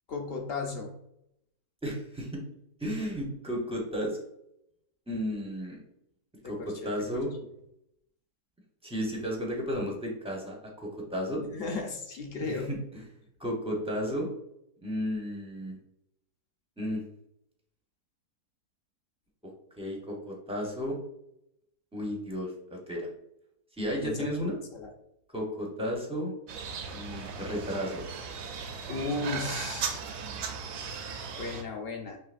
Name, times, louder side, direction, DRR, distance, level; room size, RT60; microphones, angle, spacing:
voice 1, 0.1-0.9 6.4-6.7 7.1-7.2 11.4-12.7 24.0-24.2 24.7-24.9 28.9-30.0 31.4-32.2, left 3 dB, 50° left, 2 dB, 0.7 m, -35 dB
voice 2, 1.8-2.4 2.8-4.2 5.1-5.8 6.4-7.3 8.8-11.4 12.4-13.0 13.4-14.3 14.8-15.8 16.8-17.0 19.8-21.0 21.9-23.1 23.8-24.5 25.3-26.3 26.9-28.0, equal, 10° right, -2 dB, 0.4 m, -33 dB
sound 1, 26.5-31.6, right 6 dB, 85° right, 1.2 m, -37 dB
5.6 x 3.3 x 2.5 m, 0.78 s
omnidirectional pair, 1.7 m